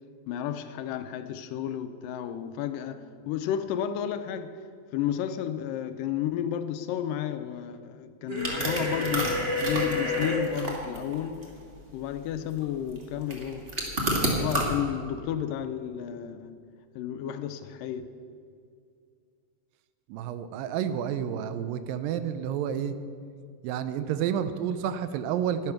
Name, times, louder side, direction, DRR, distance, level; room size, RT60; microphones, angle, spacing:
voice 1, 0.3-4.5 4.9-11.5 11.9-13.7 14.3-16.6 17.0-18.1, left 10 dB, 80° left, 2.1 m, -32 dB
sound 1, 8.3-10.4, left 1 dB, 20° right, 2.3 m, -29 dB
sound 2, 8.3-14.7, right 1 dB, 35° right, 0.9 m, -31 dB
voice 2, 20.1-23.0 23.6-25.7, right 9 dB, 80° right, 2.3 m, -30 dB
12.0 x 10.5 x 5.8 m
omnidirectional pair, 4.1 m